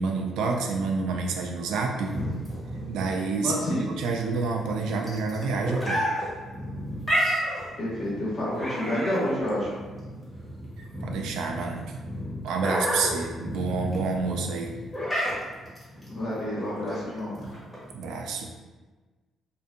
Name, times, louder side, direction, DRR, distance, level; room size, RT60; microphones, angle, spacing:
voice 1, 0.0-2.1 2.9-3.5 3.9-6.0 7.4-7.5 10.8-12.0 12.4-14.8 17.9-18.5, right 4 dB, 85° right, 2 dB, 0.3 m, -28 dB
sound 1, 2.0-17.9, equal, 10° left, 1.0 m, -32 dB
voice 2, 3.4-3.8 7.8-9.7 16.1-17.4, left 1 dB, 50° left, -7 dB, 1.2 m, -29 dB
2.6 x 2.2 x 2.5 m, 1.3 s
cardioid pair, 90°, 0 cm